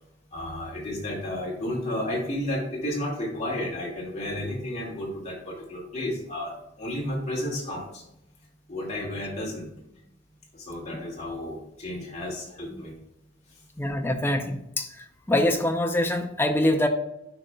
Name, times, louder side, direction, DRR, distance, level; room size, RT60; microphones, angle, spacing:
voice 1, 0.3-6.5 6.8-8.0 8.7-9.7 10.5-12.9, left 1 dB, 35° left, -3 dB, 2.1 m, -32 dB
voice 2, 13.8-14.9 15.3-16.9, left 1 dB, 10° left, 6 dB, 0.5 m, -24 dB
10.0 x 5.2 x 2.3 m, 0.86 s
head